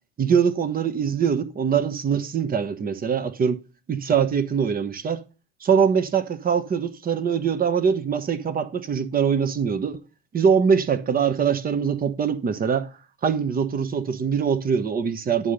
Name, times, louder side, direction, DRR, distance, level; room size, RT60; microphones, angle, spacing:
voice 1, 0.2-3.6 3.9-5.2 5.6-10.0 10.3-12.9 13.2-15.5, right 7 dB, 25° right, 1.1 m, -23 dB
11.0 x 3.8 x 6.6 m
figure-of-eight pair, 70°, 32 cm